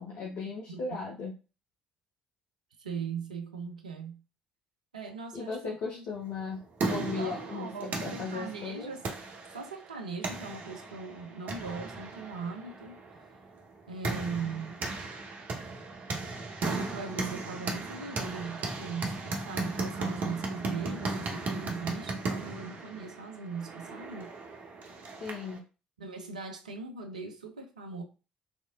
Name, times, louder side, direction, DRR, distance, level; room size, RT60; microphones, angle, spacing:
voice 1, 0.0-1.3 5.3-6.6 6.9-8.9 25.2-25.6, left 4 dB, 50° left, 0.8 m, -37 dB
voice 2, 2.8-4.2 4.9-6.0 7.2-9.1 9.5-13.0 13.9-14.8 16.7-24.3 26.0-28.0, right 5 dB, 80° right, 0.5 m, -39 dB
sound 1, 6.4-25.6, right 3 dB, 45° right, 0.9 m, -36 dB
3.5 x 3.0 x 2.3 m
figure-of-eight pair, 50°, 4 cm